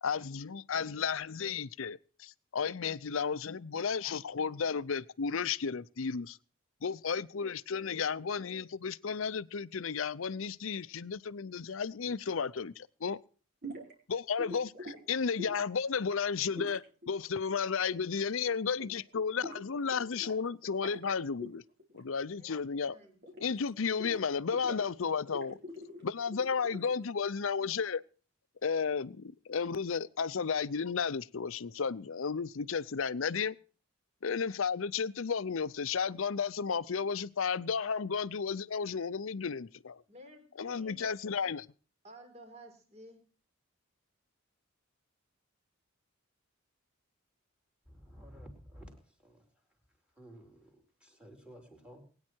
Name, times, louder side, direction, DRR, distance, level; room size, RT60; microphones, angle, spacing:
voice 1, 0.0-6.4 6.8-13.2 14.1-21.6 21.9-23.0 23.4-25.6 26.0-28.0 28.6-33.6 34.2-40.0 40.6-41.7, left 6 dB, 70° left, 0.6 m, -33 dB
sound 1, 13.6-13.9 14.4-15.0 15.4-15.8 16.6-18.0 18.3-18.5 18.8-20.3 20.6-21.1 21.4-21.5 21.8-22.3 22.5-23.7 24.0-24.9 25.3-27.1, equal, 55° right, 4.3 m, -45 dB
voice 2, 22.9-23.2 40.1-41.0 42.0-43.3, equal, 35° right, 4.4 m, -54 dB
voice 3, 47.9-49.5 50.2-52.0, equal, 5° right, 4.1 m, -53 dB
21.5 x 9.8 x 4.5 m
head